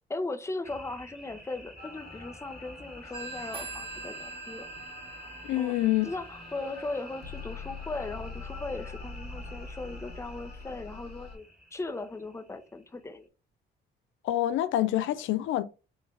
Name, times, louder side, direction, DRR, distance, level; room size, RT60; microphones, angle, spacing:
voice 1, 0.1-4.7 5.6-5.7 6.0-11.4 11.7-13.3, left 2 dB, 15° left, 0.7 m, -38 dB
sound 1, 0.6-13.2, equal, 5° right, 1.2 m, -50 dB
sound 2, 1.8-11.4, left 4 dB, 55° left, 1.3 m, -45 dB
Telephone, 3.1-8.5, right 3 dB, 25° right, 1.1 m, -44 dB
voice 2, 5.4-6.1 14.2-15.6, left 14 dB, 80° left, 0.4 m, -26 dB
4.4 x 3.2 x 3.1 m
cardioid pair, 90°, 20 cm